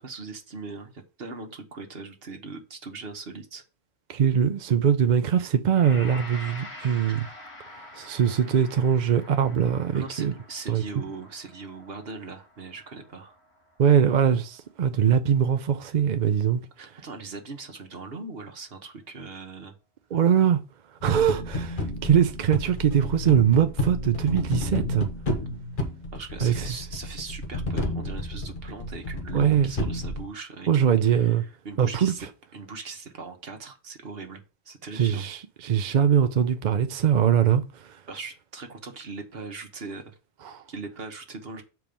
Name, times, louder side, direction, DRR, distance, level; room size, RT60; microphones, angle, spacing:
voice 1, 0.0-3.6 7.1-7.2 9.9-13.3 16.8-19.8 26.1-32.3 32.5-35.2 38.1-40.2 40.7-41.6, right 4 dB, 70° right, 1.4 m, -40 dB
voice 2, 4.1-7.2 8.0-10.3 10.7-10.8 13.8-16.6 20.1-20.6 21.0-25.1 26.4-26.8 29.3-29.7 30.7-31.4 31.8-32.1 34.9-38.0 40.4-40.6, right 8 dB, 50° right, 0.6 m, -22 dB
Gong, 5.8-15.0, left 1 dB, 85° left, 1.9 m, -46 dB
sound 1, 21.0-30.3, left 1 dB, 50° left, 1.5 m, -31 dB
7.2 x 4.6 x 5.3 m
omnidirectional pair, 1.1 m